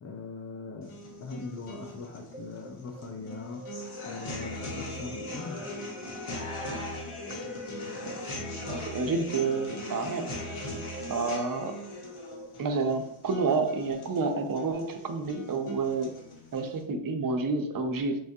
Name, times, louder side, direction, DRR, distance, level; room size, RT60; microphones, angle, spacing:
voice 1, 0.0-5.7, left 4 dB, 35° left, 2 dB, 0.4 m, -41 dB
sound 1, 0.8-16.8, left 2 dB, 80° left, 1.0 m, -40 dB
sound 2, 2.3-12.5, right 3 dB, 10° right, 0.7 m, -48 dB
voice 2, 8.7-10.3 11.1-11.7 12.6-16.1 16.5-18.2, right 4 dB, 45° right, 6 dB, 0.5 m, -29 dB
4.2 x 2.3 x 2.7 m, 0.77 s
wide cardioid pair, 95°, 49 cm